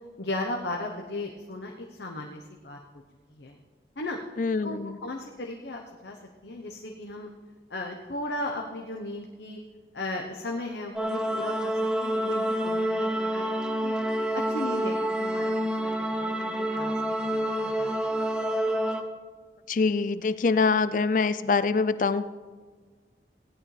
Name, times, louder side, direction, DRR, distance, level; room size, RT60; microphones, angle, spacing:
voice 1, 0.2-2.8 3.3-3.6 4.0-4.2 4.6-6.2 6.4-7.3 7.7-9.6 9.9-13.6 13.8-13.9 14.3-18.1, left 2 dB, 80° left, 1 dB, 1.0 m, -36 dB
voice 2, 4.4-5.0 19.7-22.2, left 4 dB, 45° left, 14 dB, 0.4 m, -24 dB
sound 1, 11.0-19.0, right 1 dB, 5° right, 0.7 m, -28 dB
17.0 x 11.5 x 3.3 m, 1.5 s
head